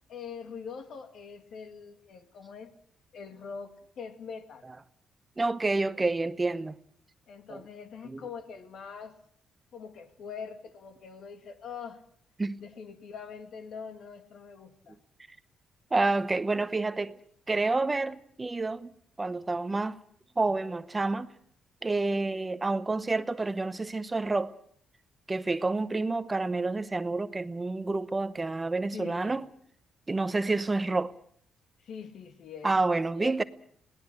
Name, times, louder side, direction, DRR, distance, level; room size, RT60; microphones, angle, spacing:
voice 1, 0.1-2.7 3.1-4.7 7.3-9.2 9.7-12.0 12.6-15.0 28.9-29.3 31.8-32.8 33.1-33.4, left 6 dB, 65° left, 2.2 m, -43 dB
voice 2, 5.4-6.8 7.5-7.6 8.1-8.2 12.4-12.6 15.9-17.1 17.5-18.9 19.2-20.0 20.4-21.3 21.8-24.6 25.3-29.5 30.1-31.1 32.6-33.4, right 3 dB, 20° right, 0.9 m, -29 dB
21.5 x 18.5 x 7.7 m
cardioid pair, 90°, 0 cm